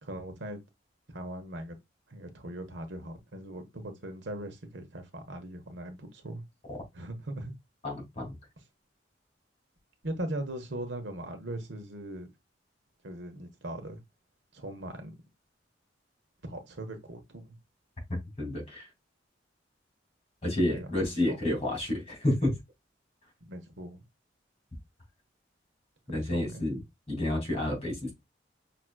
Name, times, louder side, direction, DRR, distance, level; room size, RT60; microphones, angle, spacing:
voice 1, 0.0-0.6 1.1-1.8 2.1-6.4 6.9-7.5 10.0-12.3 13.0-14.0 14.5-15.1 16.4-17.5 20.7-21.4 23.5-24.0 26.1-26.6, right 1 dB, 75° right, 1.2 m, -39 dB
voice 2, 7.8-8.3 18.1-18.9 20.4-22.5 26.1-26.8 27.1-28.1, left 1 dB, 35° left, 2.6 m, -30 dB
6.1 x 3.0 x 2.3 m
head